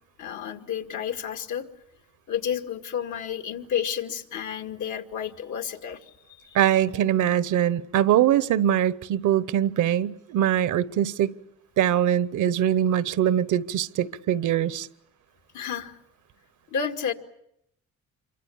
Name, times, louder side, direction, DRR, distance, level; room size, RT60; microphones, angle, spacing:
voice 1, 0.2-1.7 2.3-6.6 15.5-15.9 16.7-17.1, left 8 dB, 75° left, 2.3 m, -31 dB
voice 2, 6.5-11.3 11.8-14.9, right 11 dB, 75° right, 0.9 m, -22 dB
27.0 x 24.5 x 7.2 m
cardioid pair, 90°, 30 cm